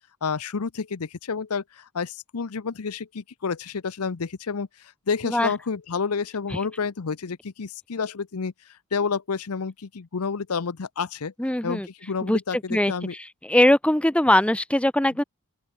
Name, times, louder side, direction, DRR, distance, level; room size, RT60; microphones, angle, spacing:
voice 1, 0.2-8.5 8.9-11.3 11.6-13.1, left 5 dB, 70° left, 0.7 m, -29 dB
voice 2, 11.4-11.9 12.2-12.4 12.7-15.2, left 1 dB, 5° left, 0.8 m, -21 dB
open air
head